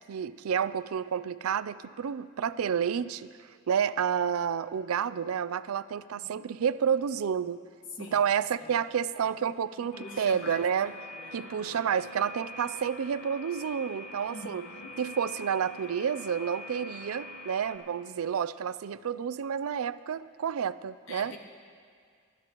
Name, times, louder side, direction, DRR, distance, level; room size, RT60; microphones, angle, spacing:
voice 1, 0.1-3.3 3.7-7.6 8.0-10.9 11.3-14.7 15.0-21.3, right 7 dB, 90° right, 15 dB, 0.4 m, -30 dB
voice 2, 7.9-8.3 8.6-8.8 9.9-10.6 11.1-11.9 14.3-15.0 21.1-21.4, left 3 dB, 65° left, 4 dB, 1.2 m, -45 dB
sound 1, 9.9-17.8, left 1 dB, 85° left, 1.8 m, -44 dB
27.5 x 12.5 x 3.0 m, 2.1 s
head